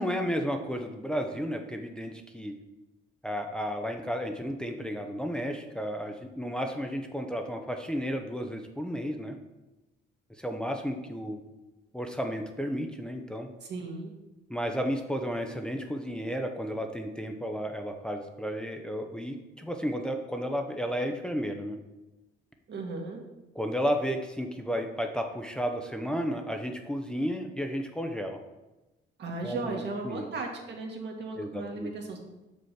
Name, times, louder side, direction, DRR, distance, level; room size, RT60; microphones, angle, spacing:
voice 1, 0.0-2.5 3.2-9.4 10.4-11.4 11.9-13.5 14.5-21.8 23.5-28.4 29.4-30.3 31.4-31.9, equal, 5° left, 4 dB, 0.7 m, -33 dB
voice 2, 13.6-14.1 22.7-23.2 29.2-32.2, right 3 dB, 60° right, 1 dB, 1.8 m, -36 dB
6.3 x 5.3 x 5.8 m, 1.0 s
cardioid pair, 90°, 20 cm